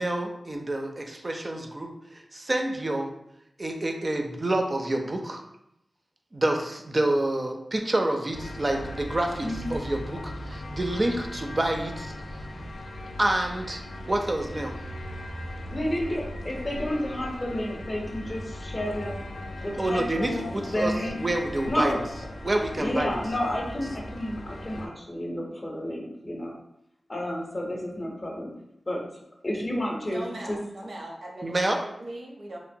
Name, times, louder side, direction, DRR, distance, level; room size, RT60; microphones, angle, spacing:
voice 1, 0.0-3.1 3.6-5.4 6.3-12.1 13.2-14.7 19.8-22.0 22.4-23.1 31.4-31.8, right 1 dB, 35° right, 3 dB, 0.4 m, -28 dB
sound 1, 8.3-24.9, left 1 dB, 85° left, 0.3 m, -38 dB
voice 2, 15.7-19.2 19.6-21.2 21.7-22.0 22.7-26.6 27.1-28.6 28.9-30.6, left 1 dB, 40° left, -1 dB, 0.5 m, -31 dB
voice 3, 30.0-32.6, right 1 dB, 80° right, -2 dB, 0.6 m, -39 dB
2.9 x 2.0 x 2.6 m, 0.81 s
wide cardioid pair, 75°, 0 cm